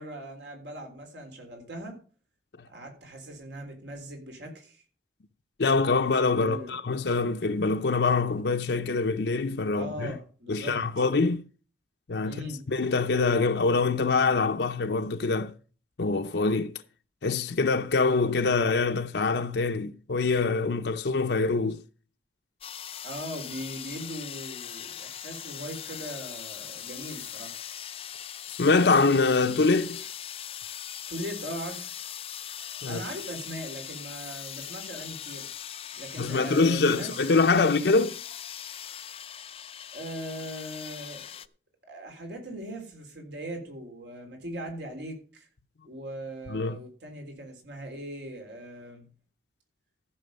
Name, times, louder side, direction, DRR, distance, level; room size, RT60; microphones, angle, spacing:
voice 1, 0.0-2.0 2.7-4.8 6.4-6.8 9.7-10.8 12.2-12.6 23.0-27.5 31.1-31.9 32.9-35.5 36.0-37.7 39.9-41.2 41.9-45.5 45.8-49.1, right 1 dB, 80° right, 3.6 m, -39 dB
voice 2, 5.6-10.1 10.5-11.4 12.1-12.4 12.7-15.5 16.0-16.7 17.2-21.8 28.5-30.0 32.8-33.0 36.2-38.1 46.5-46.8, left 4 dB, 75° left, 0.6 m, -24 dB
sound 1, 22.6-41.5, left 10 dB, 35° left, 0.4 m, -40 dB
14.5 x 6.3 x 5.2 m
head